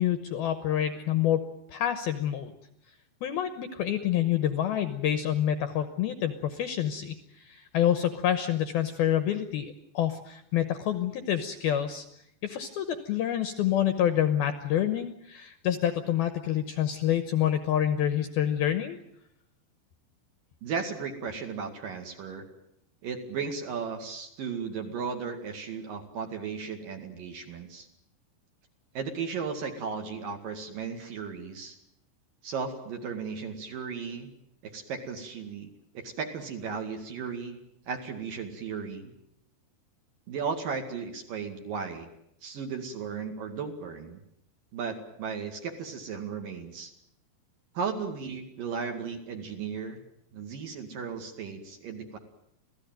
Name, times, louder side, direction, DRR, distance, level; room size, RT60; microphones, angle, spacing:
voice 1, 0.0-1.4 1.7-2.5 3.2-12.1 12.4-19.0, left 10 dB, 70° left, 9 dB, 2.4 m, -27 dB
voice 2, 20.6-22.5 23.0-27.9 29.0-31.8 32.4-34.3 34.6-39.1 40.3-42.1 42.4-44.2 44.7-46.9 47.7-50.0 50.3-52.2, right 5 dB, 55° right, 4 dB, 3.3 m, -35 dB
27.0 x 17.0 x 9.1 m, 0.76 s
omnidirectional pair, 5.6 m